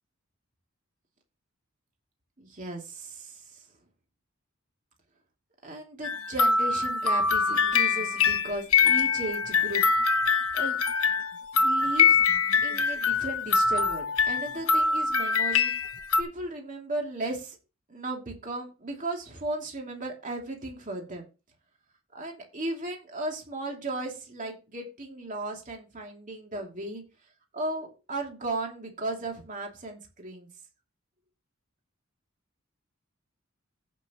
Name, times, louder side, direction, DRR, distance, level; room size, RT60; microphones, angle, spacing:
voice 1, 2.4-3.6 5.6-9.8 10.3-10.8 11.6-12.2 12.6-15.7 16.2-17.6 17.9-21.3 22.1-27.0 27.5-30.5, right 2 dB, 35° right, 1 dB, 2.8 m, -36 dB
sound 1, 6.0-16.2, left 5 dB, 85° left, 1.1 m, -24 dB
15.5 x 6.1 x 3.0 m, 0.31 s
head